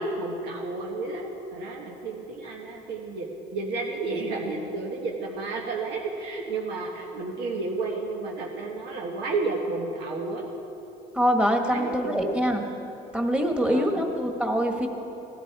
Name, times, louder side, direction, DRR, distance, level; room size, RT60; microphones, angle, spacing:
voice 1, 0.0-10.5 11.7-12.5 13.6-14.0, right 3 dB, 80° right, -2 dB, 1.4 m, -32 dB
voice 2, 11.1-12.6 13.1-14.9, equal, 5° right, 2 dB, 1.6 m, -24 dB
17.5 x 12.0 x 4.8 m, 3.0 s
cardioid pair, 110°, 17 cm